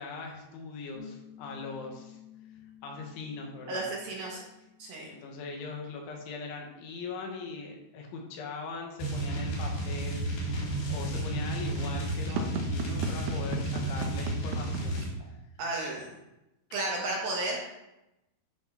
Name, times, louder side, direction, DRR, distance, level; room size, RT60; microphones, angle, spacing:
voice 1, 0.0-2.2 2.8-3.9 5.0-15.4, left 4 dB, 75° left, 0 dB, 4.0 m, -41 dB
Piano, 0.9-6.0, left 9 dB, 15° left, 2.0 m, -52 dB
voice 2, 3.7-4.4 4.8-5.1 15.6-16.1 16.7-17.6, right 2 dB, 60° right, -2 dB, 2.9 m, -33 dB
sound 1, 9.0-15.1, right 1 dB, 50° left, 4.3 m, -32 dB
sound 2, 11.8-15.1, right 4 dB, 80° right, 3.3 m, -36 dB
12.5 x 5.5 x 5.9 m, 0.93 s
omnidirectional pair, 5.6 m